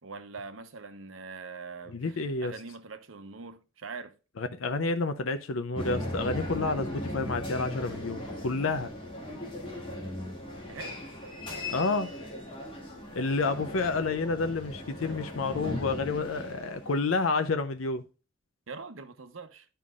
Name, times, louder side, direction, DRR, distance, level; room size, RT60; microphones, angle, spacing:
voice 1, 0.0-4.2 10.7-11.0 18.7-19.7, right 4 dB, 85° right, 1.0 m, -43 dB
voice 2, 1.9-2.6 4.4-8.9 11.7-12.1 13.1-18.0, left 3 dB, 85° left, 0.6 m, -29 dB
sound 1, 5.8-17.0, left 1 dB, 25° left, 2.3 m, -38 dB
11.0 x 5.6 x 2.4 m
head